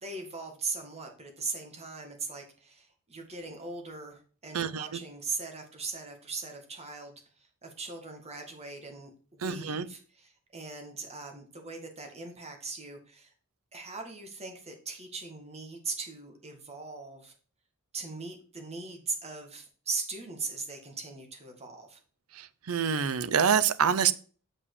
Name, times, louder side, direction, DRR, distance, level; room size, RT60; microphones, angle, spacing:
voice 1, 0.0-13.3 13.7-17.3 17.9-22.0, right 4 dB, 30° right, 3 dB, 1.9 m, -39 dB
voice 2, 4.5-4.9 9.4-9.9 22.7-24.1, right 7 dB, 85° right, 14 dB, 0.6 m, -26 dB
7.1 x 5.3 x 4.9 m, 0.40 s
head